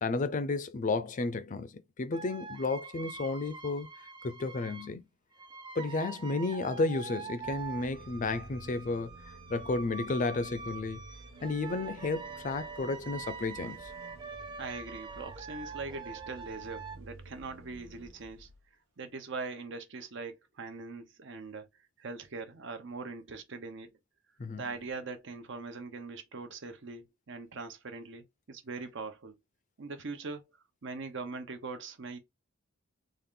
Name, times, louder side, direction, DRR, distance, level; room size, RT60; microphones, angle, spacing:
voice 1, 0.0-3.9 4.2-5.0 5.8-9.1 9.5-11.0 11.4-13.9 24.4-24.6, left 3 dB, 40° left, 0.5 m, -32 dB
sound 1, 2.1-4.9 5.3-17.0, right 5 dB, 25° right, 0.5 m, -44 dB
sound 2, 7.4-18.7, right 2 dB, 90° right, 0.9 m, -52 dB
voice 2, 14.6-18.5 19.0-21.7 22.0-23.9 24.5-29.3 29.8-30.4 30.8-32.2, right 3 dB, 65° right, 0.8 m, -41 dB
3.8 x 2.5 x 3.7 m
head